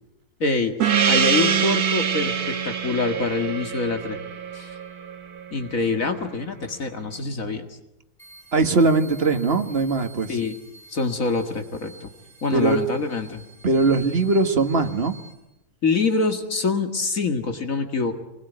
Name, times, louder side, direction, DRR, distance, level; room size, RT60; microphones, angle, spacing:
voice 1, 0.4-0.8 1.1-4.2 4.5-4.8 5.5-7.7 10.3-10.5 10.9-12.1 12.4-13.4 15.8-18.2, left 4 dB, 60° left, 6 dB, 2.3 m, -25 dB
Gong, 0.8-5.8, right 7 dB, 85° right, 1.8 m, -24 dB
sound 1, 8.2-15.3, right 3 dB, 20° left, 6.6 m, -48 dB
voice 2, 8.5-10.4 12.5-12.8 13.6-15.1, right 3 dB, 45° right, 7 dB, 1.9 m, -20 dB
26.0 x 21.0 x 9.4 m, 0.88 s
omnidirectional pair, 1.6 m